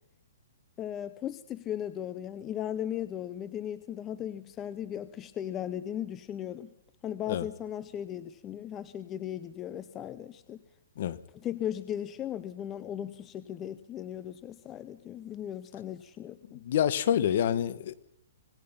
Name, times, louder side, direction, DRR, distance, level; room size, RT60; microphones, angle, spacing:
voice 1, 0.8-6.7 7.0-10.6 11.3-16.6, left 10 dB, 20° left, 14 dB, 0.7 m, -37 dB
voice 2, 16.6-17.9, left 10 dB, 50° left, 16 dB, 1.4 m, -27 dB
26.0 x 19.5 x 5.8 m, 0.82 s
hypercardioid pair, 155°, 0 cm